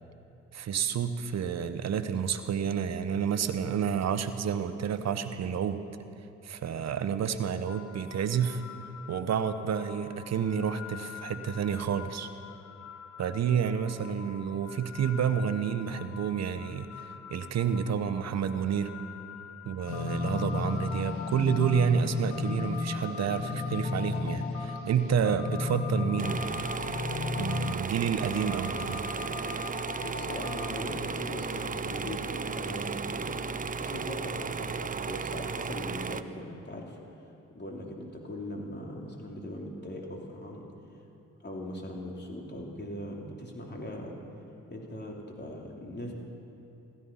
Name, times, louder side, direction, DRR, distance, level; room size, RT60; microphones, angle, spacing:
voice 1, 0.5-5.8 6.4-8.6 9.1-12.3 13.2-16.9 17.3-18.9 19.6-26.7 27.4-29.0, right 7 dB, 60° right, 11 dB, 1.0 m, -29 dB
sound 1, 7.6-22.8, left 9 dB, 55° left, 0.9 m, -47 dB
sound 2, 19.9-33.6, left 4 dB, 85° left, 1.5 m, -35 dB
sound 3, 26.2-36.2, right 5 dB, 30° right, 0.6 m, -35 dB
voice 2, 29.6-33.3 33.8-37.0 37.5-40.7 41.4-44.1 44.7-46.1, left 1 dB, 35° left, -1 dB, 3.5 m, -40 dB
15.5 x 13.5 x 5.6 m, 2.9 s
supercardioid pair, 50°, 30 cm